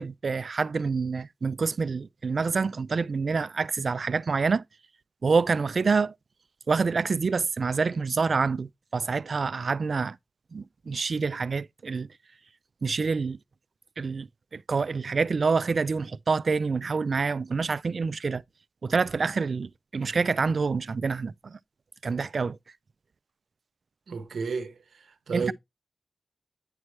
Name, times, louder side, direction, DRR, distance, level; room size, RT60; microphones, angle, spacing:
voice 1, 0.0-4.6 5.2-6.1 6.7-10.2 10.5-12.1 12.8-13.4 14.0-18.4 18.8-21.6 22.0-22.6 25.3-25.5, right 4 dB, 65° right, 0.3 m, -27 dB
voice 2, 24.1-25.5, right 5 dB, 85° right, 0.8 m, -33 dB
9.7 x 4.6 x 3.1 m
cardioid pair, 65°, 0 cm